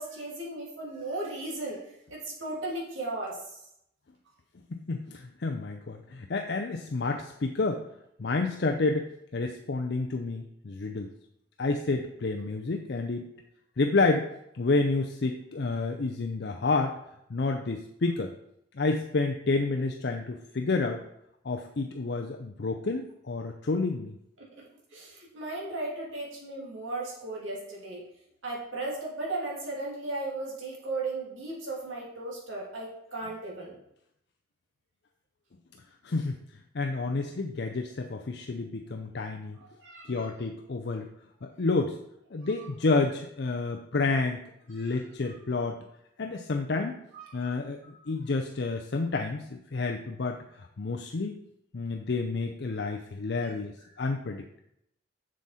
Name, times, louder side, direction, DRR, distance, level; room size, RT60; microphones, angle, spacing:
voice 1, 0.0-1.8 2.1-3.6 24.9-28.0 28.4-33.8 39.8-40.3 44.8-44.9 47.1-47.6, right 2 dB, 80° right, -3 dB, 2.8 m, -36 dB
voice 2, 4.7-7.8 8.2-11.1 11.6-13.3 13.8-14.3 14.5-17.0 17.3-18.3 18.7-21.0 21.4-24.2 36.0-36.4 36.7-39.6 40.1-41.1 41.4-42.0 42.3-44.4 44.7-45.8 46.2-47.0 47.3-51.4 51.7-54.6, left 3 dB, 55° left, 4 dB, 0.5 m, -29 dB
7.2 x 6.4 x 4.2 m, 0.77 s
head